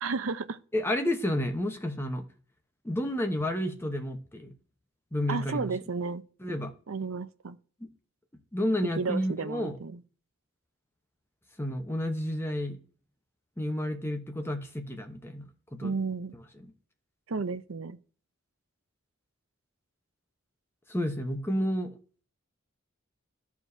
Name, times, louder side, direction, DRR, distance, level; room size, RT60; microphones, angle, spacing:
voice 1, 0.0-0.6 5.3-6.2 6.9-7.6 9.0-10.0 15.8-16.3 17.3-18.0, right 4 dB, 80° right, 0.6 m, -32 dB
voice 2, 0.7-2.3 2.8-4.5 5.1-5.7 6.4-6.7 7.8-7.9 8.5-9.8 11.6-12.8 13.6-15.4 15.7-15.9 16.6-16.7 20.9-22.0, left 1 dB, 10° left, 0.9 m, -31 dB
14.0 x 4.7 x 2.7 m
head